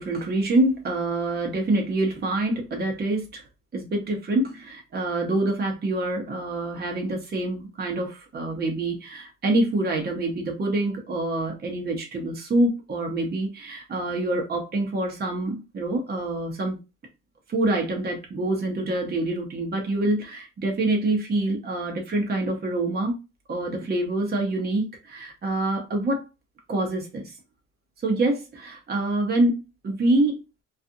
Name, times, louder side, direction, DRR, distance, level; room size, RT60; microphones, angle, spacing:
voice 1, 0.0-3.5 3.7-16.8 17.5-23.2 23.5-26.2 26.7-27.3 28.0-29.6 29.8-30.4, right 2 dB, 35° right, 0.8 m, -26 dB
2.5 x 2.4 x 2.6 m
cardioid pair, 90°, 30 cm